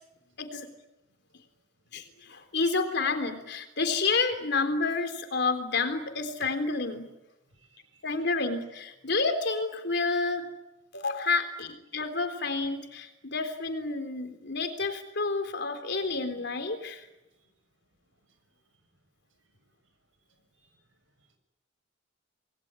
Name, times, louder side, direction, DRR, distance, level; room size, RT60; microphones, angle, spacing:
voice 1, 1.9-7.1 8.0-10.5 10.9-17.1, left 3 dB, 60° left, 8 dB, 3.7 m, -29 dB
voice 2, 7.5-8.3 17.4-17.5 18.3-18.4 20.5-20.8 21.2-21.3, right 5 dB, 90° right, 9 dB, 6.5 m, -65 dB
27.5 x 21.0 x 9.8 m, 0.94 s
head